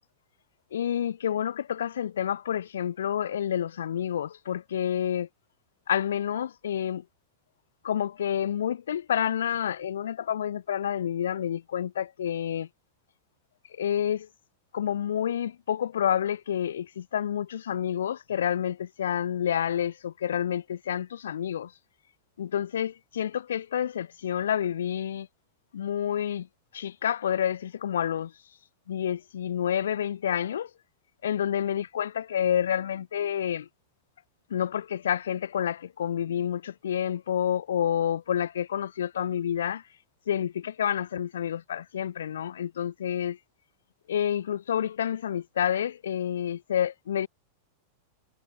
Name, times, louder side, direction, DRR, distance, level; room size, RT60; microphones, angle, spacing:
voice 1, 0.7-5.3 5.9-7.0 7.8-12.7 13.8-14.3 14.7-21.7 22.4-25.3 25.7-26.5 26.7-28.3 28.9-30.7 31.2-33.7 34.5-39.8 40.3-43.4 44.1-47.3, left 9 dB, 65° left, 0.4 m, -29 dB
figure-of-eight pair, 90°, 0 cm